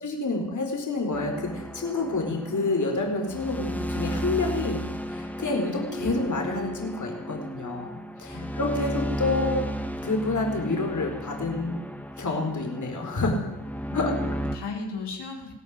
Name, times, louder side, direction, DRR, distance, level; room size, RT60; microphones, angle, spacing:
voice 1, 0.0-9.7 10.0-11.8 12.2-13.4 13.9-14.1, left 3 dB, 45° left, 3 dB, 4.5 m, -28 dB
sound 1, 1.1-14.6, equal, 5° left, 2.0 m, -34 dB
voice 2, 8.3-8.6 13.9-15.5, left 4 dB, 75° left, 1 dB, 4.9 m, -36 dB
21.0 x 17.0 x 9.6 m, 0.96 s
wide cardioid pair, 125°, 41 cm